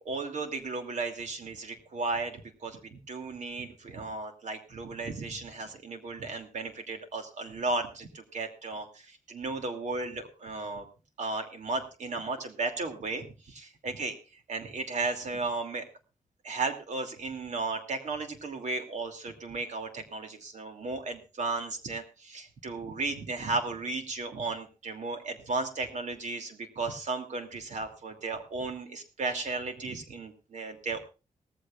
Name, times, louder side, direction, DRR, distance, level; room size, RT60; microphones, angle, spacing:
voice 1, 0.0-10.8 11.2-14.1 14.5-15.8 16.4-31.0, right 3 dB, 60° right, 6 dB, 2.7 m, -35 dB
19.0 x 14.5 x 2.5 m, 0.32 s
wide cardioid pair, 170°, 14 cm